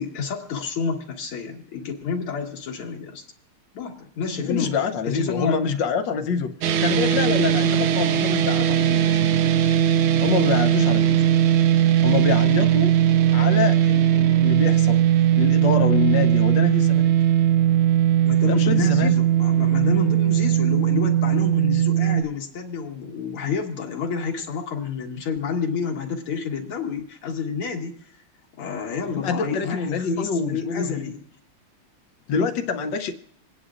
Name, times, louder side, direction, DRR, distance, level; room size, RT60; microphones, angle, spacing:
voice 1, 0.0-3.3 3.7-4.7 5.0-5.6 18.2-27.9 28.6-31.2, left 5 dB, 80° left, 0 dB, 2.5 m, -29 dB
voice 2, 4.3-9.1 10.2-11.2 12.0-13.0 13.3-15.1 15.4-17.1 18.5-19.1 29.1-31.1 32.3-33.1, left 6 dB, 65° left, 8 dB, 1.3 m, -26 dB
sound 1, 6.6-22.2, right 10 dB, 80° right, 1.6 m, -19 dB
26.5 x 9.7 x 2.4 m, 0.68 s
omnidirectional pair, 2.4 m